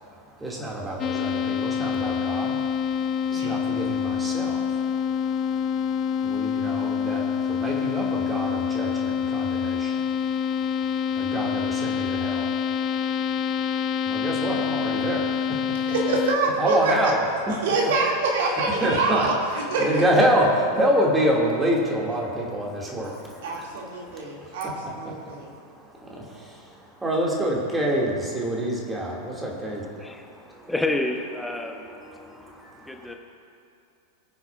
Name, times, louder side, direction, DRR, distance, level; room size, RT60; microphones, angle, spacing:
voice 1, 0.0-15.9 16.6-17.2 18.8-24.7 25.0-30.7 31.5-33.2, equal, 10° right, -3 dB, 2.4 m, -28 dB
sound 1, 1.0-16.4, left 7 dB, 30° left, 0.5 m, -26 dB
voice 2, 15.9-16.8 17.6-19.3 19.7-20.0 23.4-25.5, right 3 dB, 55° right, -2 dB, 2.5 m, -25 dB
voice 3, 30.0-32.0 32.9-33.2, left 2 dB, 5° left, 3 dB, 1.0 m, -29 dB
23.0 x 9.6 x 2.5 m, 2.4 s
figure-of-eight pair, 90°, 0 cm